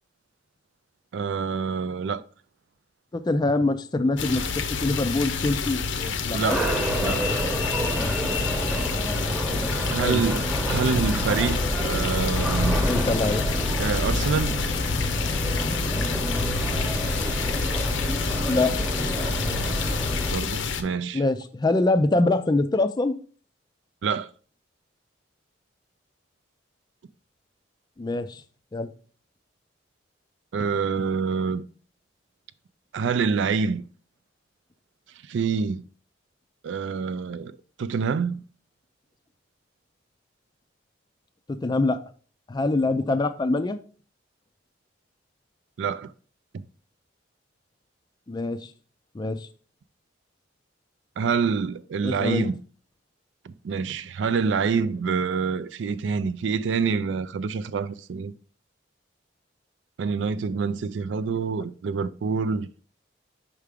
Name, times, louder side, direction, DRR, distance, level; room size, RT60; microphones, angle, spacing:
voice 1, 1.1-2.2 6.3-6.6 7.0-7.3 9.9-12.8 13.8-14.6 20.3-21.2 24.0-24.3 30.5-31.6 32.9-33.8 35.3-35.8 36.6-38.4 45.8-46.1 46.5-46.6 51.2-52.6 53.5-58.3 60.0-62.7, right 5 dB, 70° right, 0.4 m, -26 dB
voice 2, 3.1-6.6 7.0-7.2 7.8-8.2 10.0-10.2 12.9-13.4 18.5-18.8 21.1-23.1 28.0-28.4 28.7-28.9 41.5-42.0 42.5-43.8 48.3-48.7 49.1-49.5 52.0-52.5, left 2 dB, 20° left, 0.3 m, -24 dB
sound 1, 4.2-20.8, left 4 dB, 75° left, 0.6 m, -28 dB
sound 2, 6.5-20.3, equal, 10° right, 1.0 m, -28 dB
5.6 x 4.8 x 3.5 m
head